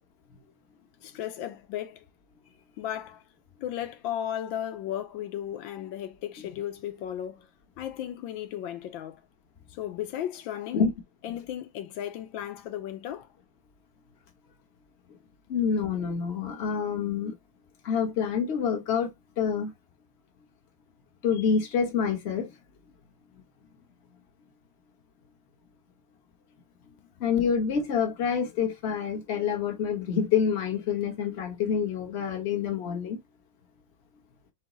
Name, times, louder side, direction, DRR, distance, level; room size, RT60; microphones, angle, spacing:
voice 1, 1.0-2.0 2.8-3.2 3.6-7.5 7.8-9.2 9.7-10.8 11.2-13.3, left 11 dB, 90° left, 1.5 m, -35 dB
voice 2, 15.5-17.3 17.8-19.7 21.2-22.5 27.2-33.2, left 6 dB, 40° left, 1.3 m, -27 dB
6.1 x 2.3 x 3.8 m
omnidirectional pair, 2.0 m